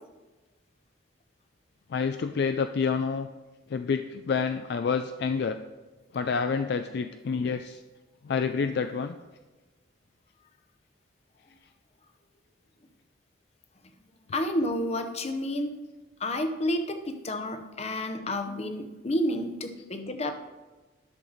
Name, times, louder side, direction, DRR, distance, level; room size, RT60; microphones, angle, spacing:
voice 1, 1.9-3.3 3.7-5.6 6.1-7.8 8.2-9.2, left 5 dB, 55° left, 8 dB, 0.3 m, -28 dB
voice 2, 14.3-15.8 16.2-20.3, left 1 dB, 35° left, 7 dB, 0.7 m, -30 dB
10.5 x 6.5 x 4.0 m, 1.2 s
head